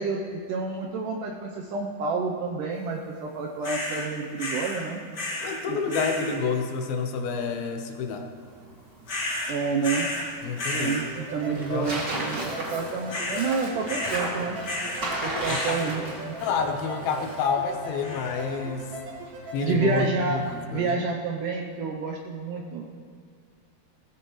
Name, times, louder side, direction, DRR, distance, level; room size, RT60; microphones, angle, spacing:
voice 1, 0.0-5.0 5.7-6.5 9.5-10.1 10.7-14.6 15.2-16.4 19.6-20.4 20.7-22.8, right 4 dB, 75° right, 1 dB, 2.0 m, -29 dB
sound 1, 3.6-4.1 4.4-4.8 5.1-5.6 5.9-6.4 9.1-10.3 10.6-11.1 13.1-13.5 13.9-14.3 14.6-15.1 15.4-15.9 18.0-18.4, left 1 dB, 45° left, 1.4 m, -32 dB
voice 2, 5.4-8.3 10.4-11.0 11.7-11.9 15.2-15.9 16.4-18.9 19.5-21.0, left 5 dB, 75° left, 4 dB, 2.8 m, -29 dB
Tearing, 8.4-20.6, right 1 dB, 35° right, 2.2 m, -37 dB
sound 2, 11.0-19.7, right 1 dB, 60° right, 3.8 m, -40 dB
19.5 x 14.5 x 3.1 m, 2.2 s
omnidirectional pair, 4.5 m